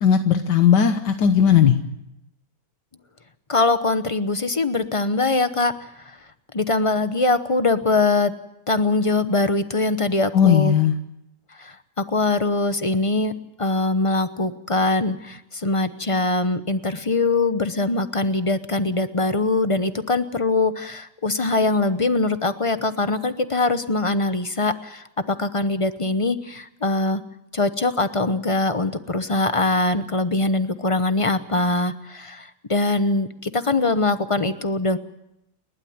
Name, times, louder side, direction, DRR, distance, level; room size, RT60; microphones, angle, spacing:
voice 1, 0.0-1.8 10.3-10.9, left 8 dB, 80° left, 7 dB, 1.7 m, -17 dB
voice 2, 3.5-6.2 6.5-8.3 8.7-10.7 11.6-13.3 13.6-27.2 27.5-35.0, left 2 dB, 25° left, 11 dB, 0.7 m, -22 dB
29.5 x 12.0 x 9.5 m, 0.84 s
omnidirectional pair, 1.8 m